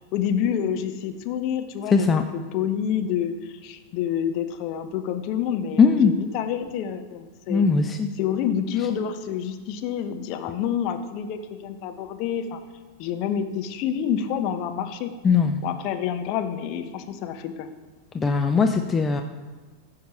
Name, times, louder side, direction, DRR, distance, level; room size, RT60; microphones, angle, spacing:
voice 1, 0.1-7.7 8.2-12.6 13.0-15.1 15.6-17.7, left 8 dB, 40° left, 7 dB, 0.9 m, -28 dB
voice 2, 1.9-2.2 5.8-6.1 7.5-8.1 15.2-15.6 18.1-19.2, left 5 dB, 20° left, 6 dB, 0.6 m, -19 dB
15.0 x 5.7 x 4.5 m, 1.4 s
figure-of-eight pair, 90°, 0 cm